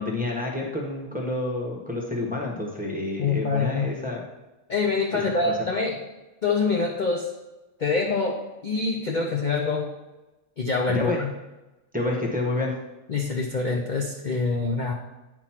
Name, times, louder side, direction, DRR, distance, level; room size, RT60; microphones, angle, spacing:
voice 1, 0.0-4.2 5.4-5.7 10.9-11.2 11.9-12.7, left 2 dB, 5° right, -2 dB, 0.9 m, -29 dB
voice 2, 3.2-3.9 4.7-6.0 6.4-7.3 7.8-9.9 10.6-11.3 13.1-14.9, left 4 dB, 45° left, 1 dB, 0.6 m, -25 dB
8.8 x 3.0 x 5.7 m, 1.0 s
omnidirectional pair, 1.5 m